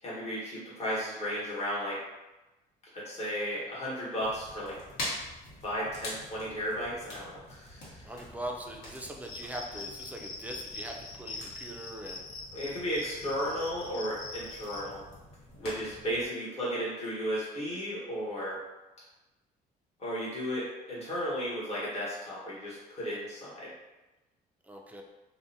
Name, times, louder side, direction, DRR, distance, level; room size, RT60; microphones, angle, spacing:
voice 1, 0.0-2.0 2.9-4.7 5.6-8.0 12.5-15.0 15.6-18.6 20.0-23.7, equal, 40° left, -7 dB, 1.1 m, -34 dB
sound 1, 4.2-16.3, left 1 dB, 80° left, 1.0 m, -45 dB
voice 2, 8.0-12.3 24.6-25.0, right 1 dB, 10° right, 1 dB, 0.3 m, -41 dB
Cricket, 9.2-14.8, left 3 dB, 60° left, 0.5 m, -43 dB
2.6 x 2.1 x 2.6 m, 1.1 s
cardioid pair, 110°, 17 cm